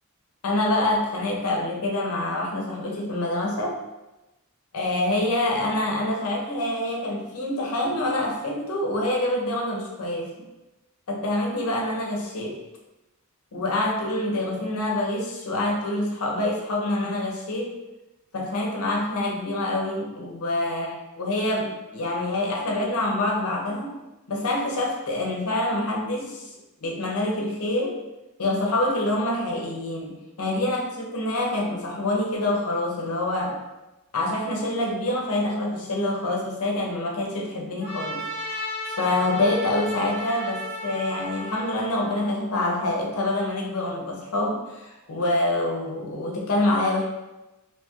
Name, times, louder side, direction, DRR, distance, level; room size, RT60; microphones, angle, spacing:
voice 1, 0.4-3.8 4.7-10.5 11.1-12.6 13.5-17.8 18.3-24.0 24.3-26.5 26.8-28.0 28.4-33.6 34.1-47.0, left 1 dB, 85° left, -1 dB, 0.6 m, -26 dB
Trumpet, 37.8-42.2, left 1 dB, 30° right, 0.8 m, -34 dB
2.8 x 2.2 x 2.9 m, 1.0 s
head